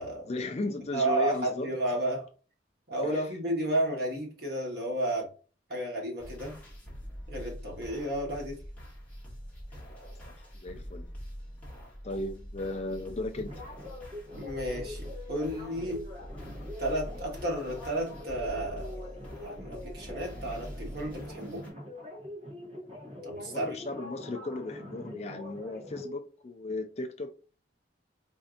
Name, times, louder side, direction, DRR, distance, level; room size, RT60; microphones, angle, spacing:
voice 1, 0.3-1.7 3.0-3.2 10.3-11.0 12.0-13.5 23.5-27.4, left 2 dB, 35° left, 0.4 m, -36 dB
voice 2, 0.9-2.3 2.9-5.3 5.7-6.6 7.3-8.6 14.3-16.1 16.8-21.7 23.2-23.9, right 1 dB, 55° right, 1.3 m, -32 dB
sound 1, 6.2-21.7, equal, 10° left, 1.1 m, -44 dB
sound 2, 13.3-26.1, left 1 dB, 30° right, 1.0 m, -44 dB
4.3 x 2.6 x 2.4 m
head